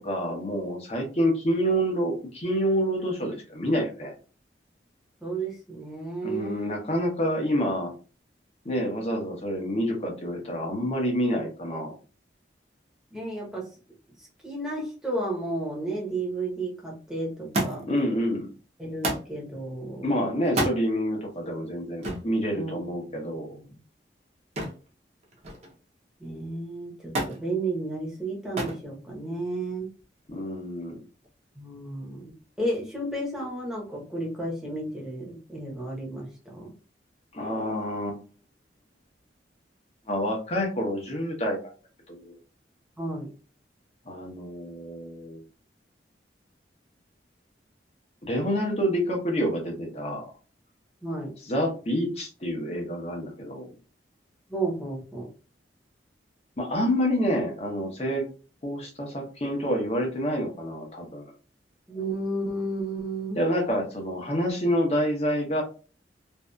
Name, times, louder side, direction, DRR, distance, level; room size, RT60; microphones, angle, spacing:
voice 1, 0.0-4.1 6.2-7.9 8.6-11.9 17.9-18.5 20.0-23.5 30.3-30.9 37.3-38.2 40.1-41.7 42.1-42.3 44.1-45.4 48.2-50.3 51.5-53.7 56.6-58.3 58.6-61.3 63.4-65.6, equal, 35° left, 1 dB, 0.7 m, -28 dB
voice 2, 5.2-6.7 13.1-13.7 14.2-17.8 18.8-20.1 22.5-22.8 23.1-23.2 23.5-23.7 26.2-29.9 31.6-32.3 32.6-36.7 43.0-43.3 51.0-51.3 54.5-55.3 61.9-63.4, right 2 dB, 5° right, -3 dB, 0.8 m, -32 dB
Thump thud, 17.5-18.0 19.0-19.3 20.4-20.8 22.0-22.3 24.6-24.9 25.2-25.8 27.1-27.4 28.6-28.8 29.8-30.3 31.2-31.3, right 1 dB, 35° right, 0.6 m, -29 dB
2.6 x 2.3 x 2.2 m, 0.36 s
head